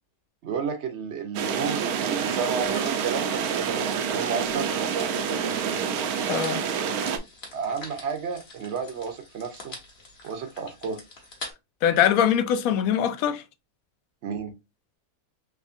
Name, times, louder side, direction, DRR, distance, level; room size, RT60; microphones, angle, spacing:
voice 1, 0.4-5.7 7.5-9.7 10.2-11.0 14.2-14.5, right 6 dB, 60° right, 0.8 m, -32 dB
sound 1, 1.3-7.2, right 7 dB, 80° right, 1.1 m, -27 dB
sound 2, 2.6-11.5, left 3 dB, 45° left, 1.2 m, -45 dB
voice 2, 6.3-6.6 11.8-13.4, left 9 dB, 75° left, 1.0 m, -22 dB
3.6 x 3.0 x 2.4 m
omnidirectional pair, 1.6 m